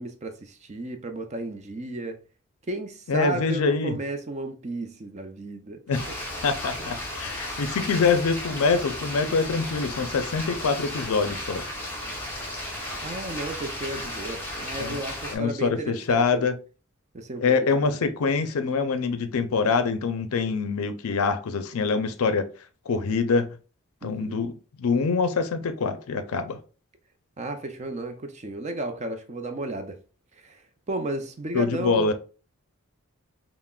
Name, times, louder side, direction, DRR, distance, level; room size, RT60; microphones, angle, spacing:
voice 1, 0.0-2.2 2.7-5.8 6.8-6.9 13.0-16.5 17.1-17.5 24.0-24.4 27.4-30.0 30.3-30.6 30.9-32.1, right 2 dB, 30° right, 0.4 m, -33 dB
voice 2, 3.1-4.0 5.9-6.0 6.4-11.6 14.8-15.0 15.3-16.6 17.4-22.5 22.9-23.5 24.0-26.6 31.5-32.1, left 4 dB, 75° left, 0.4 m, -25 dB
sound 1, 5.9-15.4, left 1 dB, 10° left, 0.7 m, -34 dB
5.6 x 2.0 x 2.3 m
head